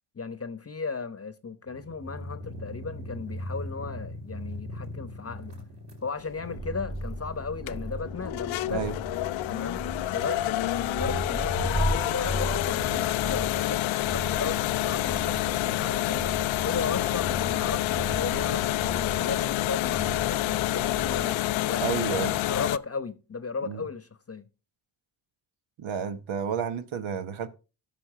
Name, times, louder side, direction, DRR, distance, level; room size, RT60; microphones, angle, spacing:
voice 1, 0.1-5.6 6.0-8.9 9.5-14.6 14.9-16.4 16.6-21.8 22.1-24.4, left 4 dB, 30° left, 1.0 m, -35 dB
sound 1, 1.7-21.2, right 1 dB, 55° right, 4.7 m, -36 dB
sound 2, 6.2-22.8, left 16 dB, 70° left, 0.5 m, -28 dB
voice 2, 21.8-22.4 23.7-23.8 25.8-27.5, right 7 dB, 70° right, 1.2 m, -31 dB
13.0 x 6.0 x 3.7 m
supercardioid pair, 45°, 49 cm